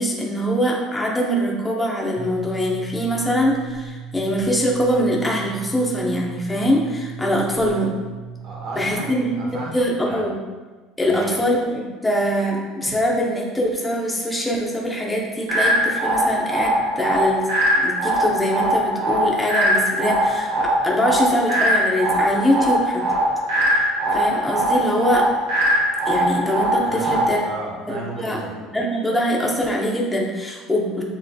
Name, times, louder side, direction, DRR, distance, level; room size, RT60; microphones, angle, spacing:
voice 1, 0.0-8.0 8.8-9.4 9.7-10.4 11.0-17.5 17.8-23.1 24.1-25.3 26.1-27.4 27.9-28.4 28.7-31.0, equal, 5° left, -2 dB, 0.7 m, -23 dB
sound 1, 2.2-9.7, right 6 dB, 30° right, 0.3 m, -36 dB
voice 2, 8.4-10.3 11.0-11.4 12.9-13.0 26.8-28.8, right 2 dB, 45° right, -3 dB, 1.1 m, -34 dB
sound 2, 15.5-27.5, equal, 90° right, 1.3 m, -21 dB
7.2 x 3.1 x 2.3 m, 1.3 s
cardioid pair, 140°, 0 cm